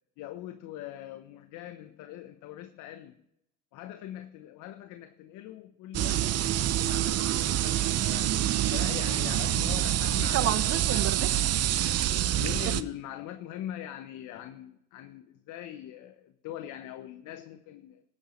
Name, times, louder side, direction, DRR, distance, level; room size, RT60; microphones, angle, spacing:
voice 1, 0.2-3.2 3.7-8.4 8.7-11.8 12.4-18.0, left 12 dB, 75° left, 10 dB, 0.7 m, -42 dB
sound 1, 5.9-12.8, right 12 dB, 55° right, 0.6 m, -26 dB
17.0 x 8.9 x 3.0 m, 0.80 s
supercardioid pair, 70°, 31 cm